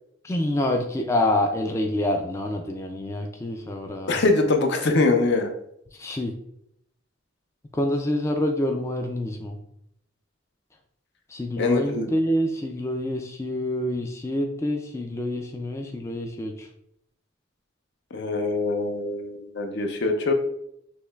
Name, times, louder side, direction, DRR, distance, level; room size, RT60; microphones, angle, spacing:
voice 1, 0.2-4.2 6.0-6.3 7.7-9.6 11.3-16.7, left 1 dB, 15° left, 2 dB, 0.3 m, -27 dB
voice 2, 4.1-5.5 11.6-12.1 18.1-20.3, left 3 dB, 60° left, 5 dB, 0.6 m, -23 dB
6.2 x 3.1 x 2.3 m, 0.75 s
head